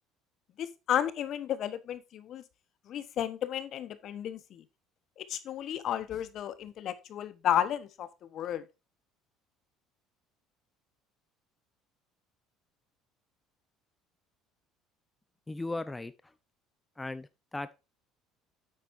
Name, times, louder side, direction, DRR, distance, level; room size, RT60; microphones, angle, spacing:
voice 1, 0.6-2.4 2.9-4.6 5.2-8.6, left 10 dB, 55° left, 1.2 m, -33 dB
voice 2, 15.5-16.1 17.0-17.7, left 2 dB, 15° left, 0.7 m, -37 dB
9.3 x 8.1 x 2.7 m
supercardioid pair, 85°, 0 cm